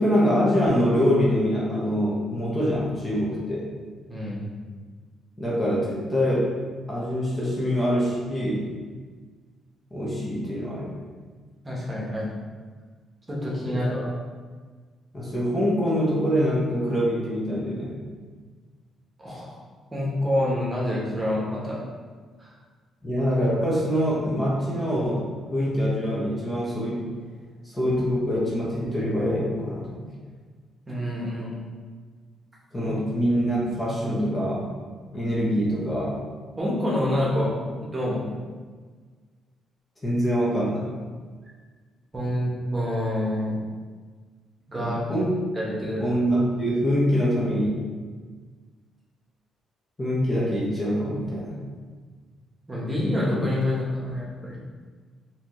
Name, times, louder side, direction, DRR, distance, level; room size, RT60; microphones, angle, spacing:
voice 1, 0.0-3.6 5.4-6.5 6.9-8.7 9.9-11.0 13.6-13.8 15.1-17.9 23.0-27.1 27.6-30.0 32.7-34.7 35.1-36.2 38.2-38.3 40.0-40.9 44.8-45.3 46.0-47.8 50.0-51.6, equal, 20° left, -6 dB, 1.0 m, -24 dB
voice 2, 4.1-4.4 11.6-12.2 13.3-14.1 19.2-19.6 19.9-21.8 22.4-22.5 30.9-31.6 32.8-32.9 36.6-37.5 37.9-38.2 42.1-43.6 44.7-45.0 45.5-46.2 52.7-54.6, left 1 dB, 20° right, -5 dB, 1.2 m, -27 dB
4.0 x 2.9 x 3.1 m, 1.5 s
cardioid pair, 90°, 0 cm